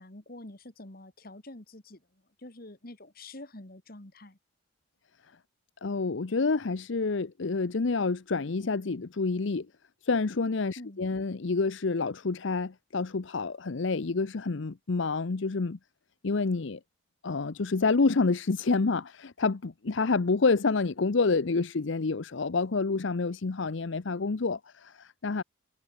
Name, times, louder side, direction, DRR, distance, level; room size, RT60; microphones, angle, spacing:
voice 1, 0.0-2.0 2.4-4.4 10.8-11.0, left 1 dB, 45° left, 2.0 m, -46 dB
voice 2, 5.8-9.7 10.0-15.8 16.2-16.8 17.2-25.4, left 4 dB, 65° left, 0.7 m, -28 dB
head